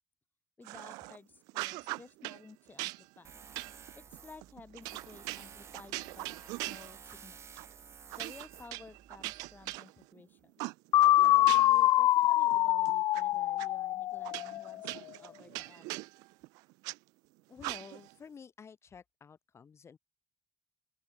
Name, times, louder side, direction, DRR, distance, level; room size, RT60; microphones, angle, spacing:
voice 1, 0.6-3.4 4.0-6.4 6.7-7.4 8.2-10.5 11.2-16.1, left 4 dB, 30° left, 2.9 m, -54 dB
sound 1, 0.6-1.2 1.5-2.4 2.8-7.2 7.6-7.7 8.1-10.2 10.6-11.9 12.2-13.2 13.6-13.7 14.2-17.0 17.6-18.1, right 25 dB, 85° right, 1.3 m, -41 dB
Tools, 3.2-9.8, right 7 dB, 45° right, 1.6 m, -53 dB
sound 2, 10.9-14.8, left 15 dB, 75° left, 0.5 m, -25 dB
voice 2, 17.5-20.0, left 6 dB, 45° left, 5.5 m, -51 dB
open air
supercardioid pair, 60°, 6 cm